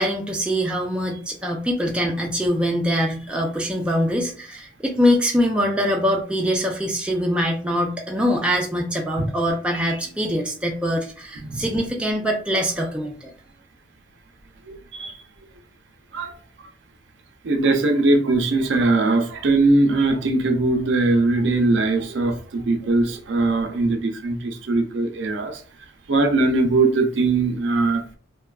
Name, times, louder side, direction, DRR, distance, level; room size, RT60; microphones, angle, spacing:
voice 1, 0.0-13.3, equal, 5° right, 0 dB, 0.3 m, -23 dB
voice 2, 14.7-15.1 16.1-16.3 17.4-25.6 26.1-28.2, right 2 dB, 65° right, 4 dB, 0.5 m, -20 dB
2.6 x 2.2 x 2.3 m, 0.42 s
head